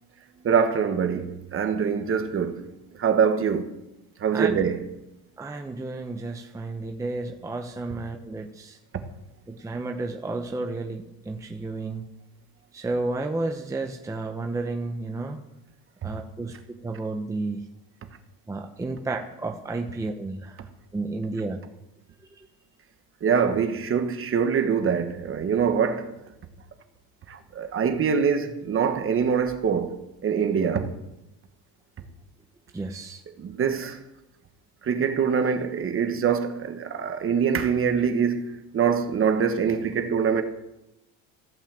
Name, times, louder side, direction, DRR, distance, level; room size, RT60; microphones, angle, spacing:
voice 1, 0.4-2.6 3.0-3.7 4.2-4.8 23.2-26.1 27.3-30.0 30.2-30.9 33.4-34.0 34.9-38.4 38.7-40.4, right 6 dB, 35° right, 1.2 m, -24 dB
voice 2, 5.4-8.8 9.5-12.0 12.7-15.4 16.0-17.6 18.5-20.6 20.9-21.6 32.7-33.2, right 3 dB, 10° right, 0.7 m, -32 dB
15.0 x 5.6 x 7.4 m
cardioid pair, 135°, 39 cm